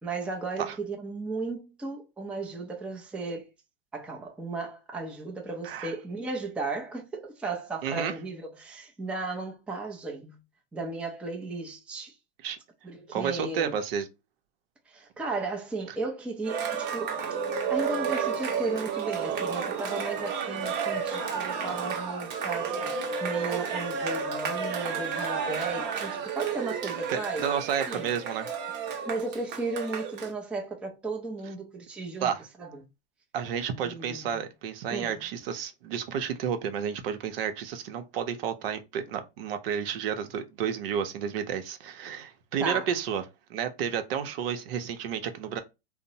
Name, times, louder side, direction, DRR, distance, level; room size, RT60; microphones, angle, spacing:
voice 1, 0.0-3.5 3.9-10.4 10.7-12.2 12.8-13.8 14.9-17.2 17.7-27.5 27.9-28.1 29.1-32.3 32.6-32.9 33.8-34.4 34.9-35.2 42.6-42.9, right 3 dB, 5° right, 0.4 m, -35 dB
voice 2, 7.8-8.1 12.4-12.6 13.1-14.1 27.1-28.5 32.2-32.4 33.3-43.2 43.5-45.6, right 8 dB, 70° right, 0.7 m, -31 dB
Cheering, 16.4-30.3, right 6 dB, 35° right, 0.8 m, -31 dB
2.8 x 2.0 x 2.7 m
hypercardioid pair, 120°, 30 cm